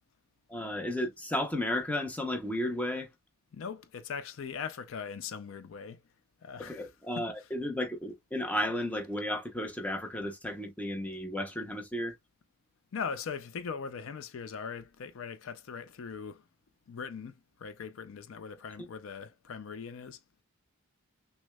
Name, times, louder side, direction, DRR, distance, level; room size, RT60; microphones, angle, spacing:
voice 1, 0.5-3.1 6.6-12.1, left 1 dB, 5° left, 0.6 m, -33 dB
voice 2, 3.5-6.0 6.4-7.5 12.9-16.4 16.9-20.2, left 6 dB, 65° left, 0.4 m, -40 dB
6.0 x 2.1 x 2.2 m
head